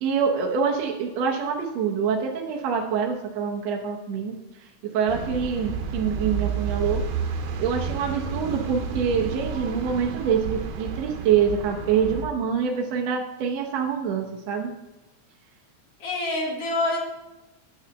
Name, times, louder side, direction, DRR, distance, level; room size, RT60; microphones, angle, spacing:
voice 1, 0.0-4.4 4.8-7.0 7.6-14.7, right 6 dB, 70° right, 0 dB, 2.0 m, -25 dB
sound 1, 5.1-12.3, right 6 dB, 85° right, 2.4 m, -31 dB
voice 2, 16.0-17.0, left 2 dB, 55° left, 0 dB, 2.7 m, -27 dB
8.8 x 5.5 x 7.0 m, 1.0 s
omnidirectional pair, 3.4 m